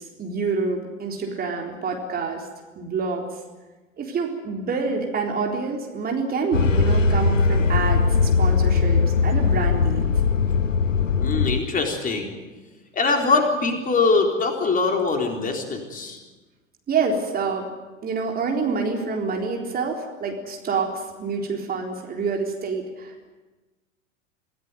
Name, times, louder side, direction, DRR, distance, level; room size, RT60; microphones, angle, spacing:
voice 1, 0.0-2.5 2.8-3.2 4.0-10.1 16.9-17.7 18.0-23.3, right 4 dB, 25° right, 1 dB, 3.9 m, -27 dB
sound 1, 6.5-11.6, left 5 dB, 80° left, 0.9 m, -20 dB
voice 2, 11.2-12.4 12.9-16.2, left 4 dB, 20° left, 3 dB, 3.9 m, -22 dB
26.0 x 16.5 x 9.4 m, 1.2 s
figure-of-eight pair, 90°, 38 cm